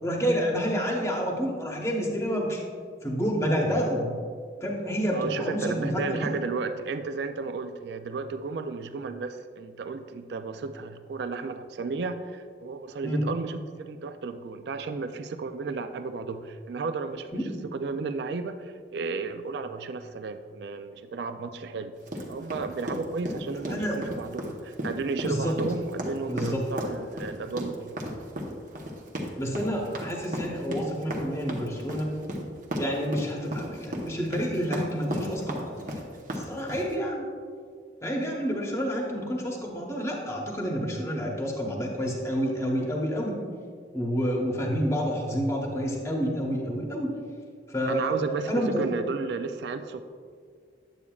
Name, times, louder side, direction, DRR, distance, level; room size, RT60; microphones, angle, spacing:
voice 1, 0.0-2.6 3.0-4.1 4.6-6.3 13.0-13.2 17.3-17.6 23.7-24.0 25.2-25.5 26.3-26.6 29.4-32.1 32.8-35.8 36.3-37.2 38.0-43.4 43.9-47.1 47.7-48.2 48.5-48.9, equal, 15° left, -1 dB, 1.0 m, -29 dB
voice 2, 5.1-21.9 22.3-28.0 47.9-50.0, right 4 dB, 60° right, 10 dB, 0.3 m, -33 dB
sound 1, 22.1-36.9, equal, 45° right, 0.9 m, -34 dB
8.8 x 8.3 x 2.4 m, 2.1 s
head